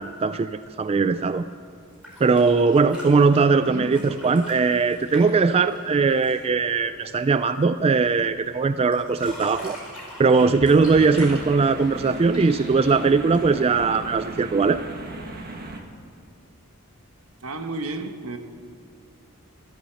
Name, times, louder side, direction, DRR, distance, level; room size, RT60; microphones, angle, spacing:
voice 1, 0.0-1.4 2.2-9.8 10.2-14.8, right 4 dB, 30° right, 0.3 m, -20 dB
sound 1, 1.9-6.5 8.9-13.8 15.2-15.3, equal, 5° right, 4.9 m, -41 dB
voice 2, 3.5-4.0 17.4-18.4, right 2 dB, 75° right, 1.2 m, -32 dB
sound 2, 10.8-15.8, right 2 dB, 45° right, 1.4 m, -37 dB
14.5 x 12.5 x 7.0 m
head